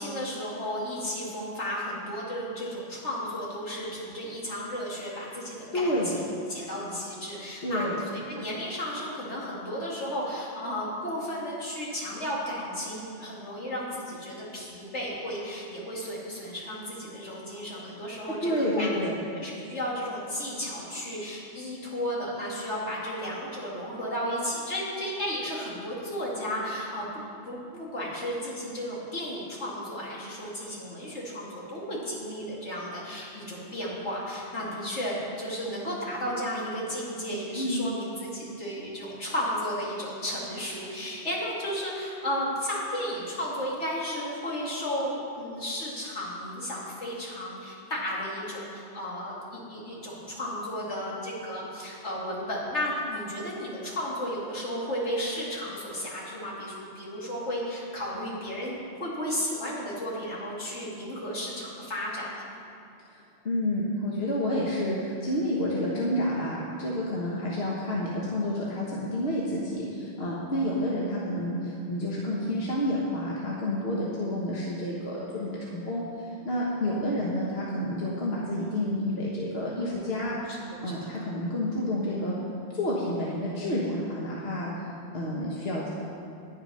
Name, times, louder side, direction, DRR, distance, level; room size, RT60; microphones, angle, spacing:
voice 1, 0.0-18.9 19.3-27.1 27.5-62.5 79.6-80.6 80.8-81.1, equal, 75° left, -5 dB, 2.6 m, -34 dB
voice 2, 5.7-6.1 7.6-8.0 18.4-19.2 37.6-37.9 63.1-63.2 63.4-82.4 82.7-84.7 85.1-85.9, left 1 dB, 60° left, -5 dB, 1.6 m, -29 dB
10.5 x 9.8 x 5.5 m, 2.6 s
omnidirectional pair, 1.2 m